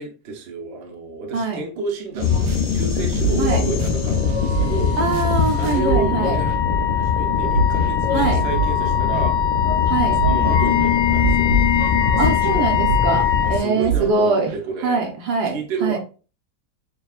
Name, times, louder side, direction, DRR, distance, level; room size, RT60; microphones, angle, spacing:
voice 1, 0.0-5.0 5.5-9.3 10.2-11.6 12.1-12.7 13.4-15.1 15.4-16.0, right 3 dB, 50° right, 1 dB, 0.9 m, -30 dB
voice 2, 1.3-1.6 3.4-3.6 5.0-6.4 8.1-8.4 9.9-10.2 12.2-14.5 14.8-16.0, right 4 dB, 70° right, 1 dB, 1.2 m, -23 dB
sound 1, 2.1-6.1 6.5-6.9 7.3-8.8 9.1-9.3 10.1-14.2 14.5-14.6, right 9 dB, 90° right, 1.4 m, -28 dB
sound 2, 2.2-13.6, left 6 dB, 90° left, 1.3 m, -21 dB
Wind instrument woodwind instrument, 4.2-13.6, left 11 dB, 45° left, 1.6 m, -24 dB
6.2 x 2.3 x 2.4 m, 0.35 s
omnidirectional pair, 1.9 m